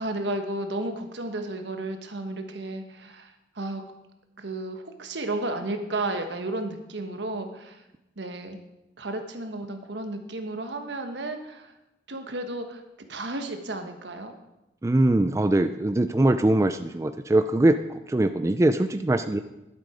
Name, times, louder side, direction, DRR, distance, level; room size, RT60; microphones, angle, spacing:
voice 1, 0.0-3.8 4.4-7.8 8.2-8.6 9.0-11.7 12.1-12.8 13.1-14.3, right 2 dB, 75° right, 6 dB, 1.3 m, -33 dB
voice 2, 14.8-19.4, right 1 dB, 15° right, 9 dB, 0.3 m, -22 dB
11.5 x 7.7 x 5.0 m, 0.94 s
head